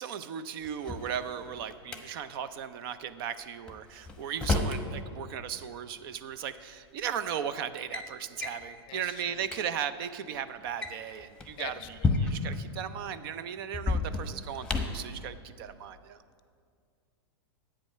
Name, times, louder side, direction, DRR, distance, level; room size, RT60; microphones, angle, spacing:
voice 1, 0.0-16.2, right 8 dB, 55° right, 13 dB, 0.5 m, -37 dB
Drawer open or close, 0.6-2.0 3.7-4.8 6.1-6.2 7.0-7.3 7.6-8.1 8.4-8.7 9.1-9.2 9.4-9.6 10.6-12.6 13.7-15.1, left 3 dB, 5° left, 0.9 m, -31 dB
voice 2, 8.9-9.4 11.6-12.2, left 13 dB, 35° left, 12 dB, 0.6 m, -45 dB
10.5 x 8.4 x 5.6 m, 2.2 s
hypercardioid pair, 130°, 14 cm